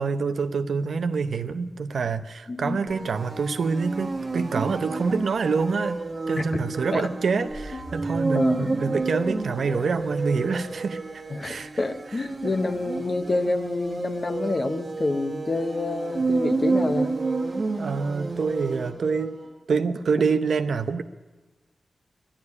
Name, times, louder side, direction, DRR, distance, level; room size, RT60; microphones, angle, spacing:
voice 1, 0.0-6.0 6.3-11.0 11.4-11.7 17.8-19.4 19.7-21.0, right 5 dB, 80° right, 9 dB, 0.7 m, -26 dB
voice 2, 2.5-2.9 6.4-6.5 6.9-7.1 7.7-7.8 8.3-8.7 11.3-17.2, left 2 dB, 40° left, 8 dB, 0.9 m, -28 dB
sound 1, 2.9-19.5, right 3 dB, 45° right, 1.3 m, -30 dB
sound 2, 7.5-11.7, left 1 dB, 15° left, 1.1 m, -41 dB
11.5 x 11.0 x 9.6 m, 1.3 s
wide cardioid pair, 110°, 0 cm